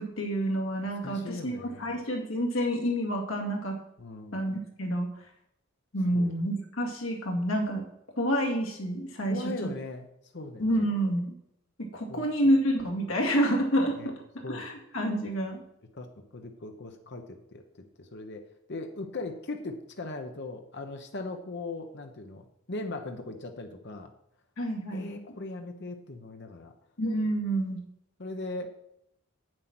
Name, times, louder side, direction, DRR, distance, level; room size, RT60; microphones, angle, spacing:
voice 1, 0.0-3.8 4.3-5.1 5.9-7.8 8.2-9.7 10.6-11.3 11.8-14.1 14.5-15.6 24.6-25.1 27.0-27.8, equal, 70° left, 1 dB, 2.3 m, -28 dB
voice 2, 1.0-2.0 4.0-4.4 6.1-6.3 9.3-10.1 10.3-10.9 12.1-12.3 14.0-14.1 14.4-14.7 15.9-16.1 16.3-24.1 24.9-26.7 28.2-28.7, left 2 dB, 55° left, 5 dB, 1.0 m, -39 dB
8.2 x 7.7 x 6.1 m, 0.79 s
head